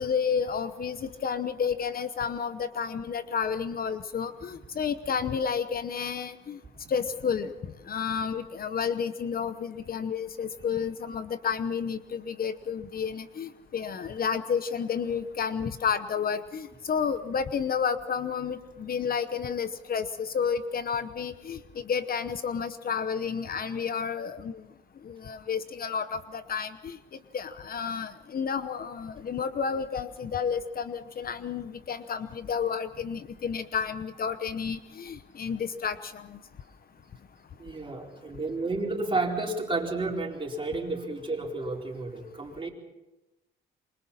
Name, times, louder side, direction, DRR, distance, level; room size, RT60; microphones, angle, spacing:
voice 1, 0.0-6.6 6.9-7.5 7.9-21.6 21.8-24.6 25.0-27.0 27.3-36.4, left 6 dB, 50° left, 12 dB, 0.9 m, -31 dB
voice 2, 37.6-42.7, right 2 dB, 25° right, -1 dB, 4.4 m, -31 dB
27.0 x 24.0 x 4.3 m, 1.0 s
cardioid pair, 90°, 20 cm